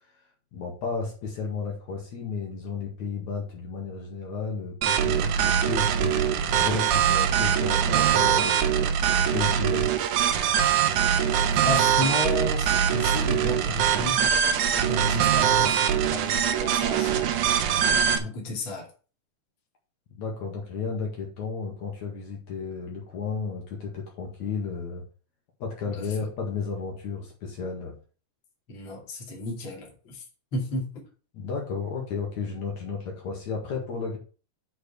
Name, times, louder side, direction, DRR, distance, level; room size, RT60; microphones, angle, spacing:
voice 1, 0.5-9.0 9.3-9.9 20.1-25.0 25.6-28.0 31.3-34.2, left 5 dB, 60° left, 3.2 m, -33 dB
sound 1, 4.8-18.2, right 8 dB, 75° right, 2.3 m, -23 dB
voice 2, 11.3-14.3 14.7-17.4 18.1-18.9 25.9-26.1 28.7-30.2 30.5-31.0, left 2 dB, 40° left, 2.9 m, -33 dB
8.0 x 4.5 x 6.8 m
omnidirectional pair, 3.7 m